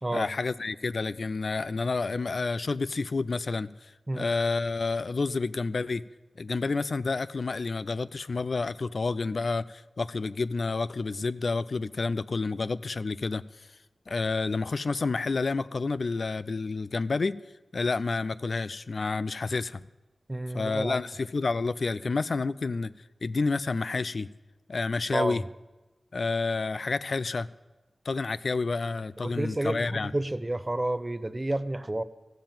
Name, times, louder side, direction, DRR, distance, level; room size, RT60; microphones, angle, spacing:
voice 1, 0.1-6.0 6.4-13.7 14.1-17.3 17.7-19.8 20.5-22.9 23.2-24.3 24.7-25.4 26.1-27.5 28.1-30.1, left 3 dB, 65° left, 16 dB, 0.4 m, -29 dB
voice 2, 20.3-21.0 25.1-25.4 29.2-32.0, right 1 dB, 25° right, 14 dB, 0.7 m, -30 dB
14.0 x 7.5 x 8.9 m, 1.1 s
cardioid pair, 45°, 0 cm